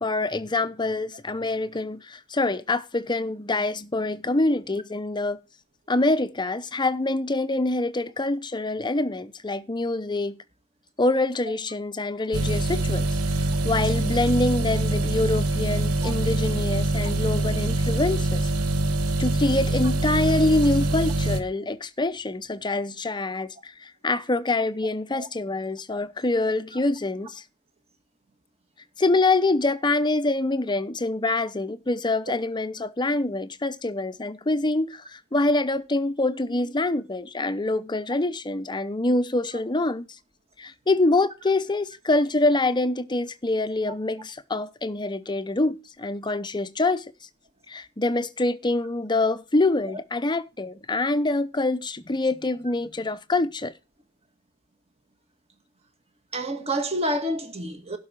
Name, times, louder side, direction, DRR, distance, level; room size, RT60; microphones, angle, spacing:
voice 1, 0.0-5.4 5.9-10.4 11.0-18.5 19.2-27.4 29.0-40.1 40.6-47.1 47.7-53.7, left 2 dB, 20° left, 0.7 m, -25 dB
sound 1, 12.3-21.4, right 2 dB, 90° right, 1.3 m, -24 dB
voice 2, 56.3-58.0, right 1 dB, 30° right, 1.8 m, -28 dB
12.0 x 4.8 x 7.3 m
head